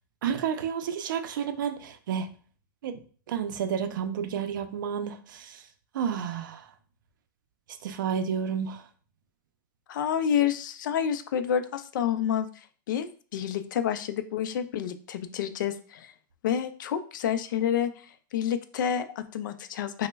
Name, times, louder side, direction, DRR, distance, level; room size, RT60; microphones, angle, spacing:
voice 1, 0.2-2.3 2.8-3.0 3.3-5.6 5.9-6.7 7.8-8.8, right 7 dB, 70° right, 9 dB, 0.4 m, -31 dB
voice 2, 9.9-16.1 16.4-20.1, left 9 dB, 65° left, 10 dB, 0.4 m, -29 dB
3.0 x 2.0 x 3.3 m, 0.42 s
supercardioid pair, 180°, 11 cm